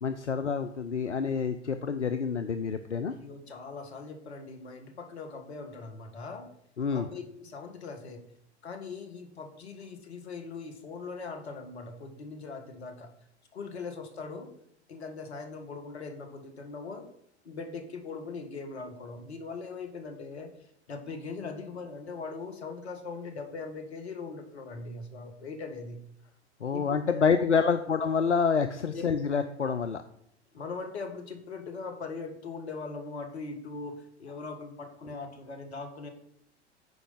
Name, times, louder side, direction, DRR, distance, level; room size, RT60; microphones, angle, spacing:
voice 1, 0.0-3.1 6.8-7.1 26.6-30.0, left 5 dB, 90° left, 9 dB, 0.6 m, -27 dB
voice 2, 3.1-6.5 6.9-8.2 8.6-13.1 13.5-14.5 14.9-17.1 17.4-26.0 26.7-26.8 27.1-27.5 28.9-29.0 30.5-36.1, left 4 dB, 70° left, 5 dB, 1.8 m, -40 dB
9.3 x 5.0 x 5.7 m, 0.73 s
figure-of-eight pair, 95°, 34 cm